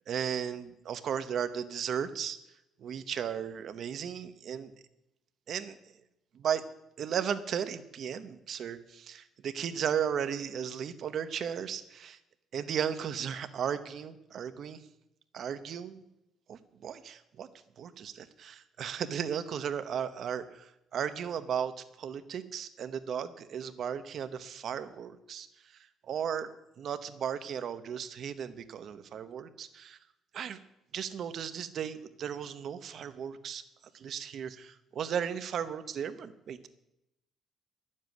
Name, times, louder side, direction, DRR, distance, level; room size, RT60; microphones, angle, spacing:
voice 1, 0.1-2.4 2.8-4.7 5.5-5.8 6.3-6.6 7.0-12.2 12.5-14.8 15.3-16.0 16.5-17.5 17.8-21.7 22.0-25.5 26.1-26.5 26.8-30.0 30.3-30.6 30.9-33.6 33.9-36.6, right 8 dB, 45° right, 12 dB, 0.9 m, -35 dB
11.5 x 7.5 x 9.2 m, 0.87 s
cardioid pair, 175°, 0 cm